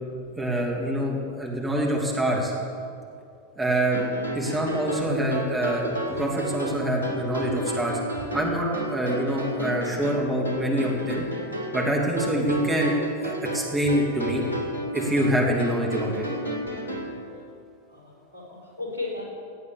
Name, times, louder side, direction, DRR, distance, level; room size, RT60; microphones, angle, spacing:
voice 1, 0.4-2.5 3.6-4.0 4.3-8.0 8.3-11.2 11.7-12.9 13.2-14.4 14.9-16.3, right 1 dB, 10° right, -2 dB, 2.8 m, -25 dB
sound 1, 3.9-17.2, right 1 dB, 80° left, 2.2 m, -32 dB
voice 2, 17.9-19.2, left 3 dB, 80° right, -3 dB, 4.0 m, -36 dB
17.5 x 8.6 x 7.2 m, 2.4 s
figure-of-eight pair, 90°, 0 cm